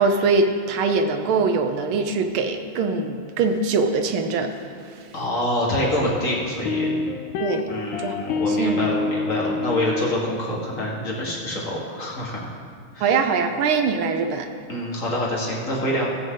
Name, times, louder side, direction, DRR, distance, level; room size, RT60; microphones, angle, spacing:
voice 1, 0.0-4.5 7.4-7.7 8.0-8.9 13.0-14.5, right 4 dB, 90° right, 6 dB, 1.6 m, -22 dB
voice 2, 5.1-6.9 7.7-12.5 12.9-13.1 14.7-16.1, left 1 dB, 40° left, -4 dB, 2.0 m, -26 dB
sound 1, 6.7-10.1, left 4 dB, 80° left, 1.4 m, -27 dB
18.0 x 7.5 x 3.9 m, 2.2 s
omnidirectional pair, 2.2 m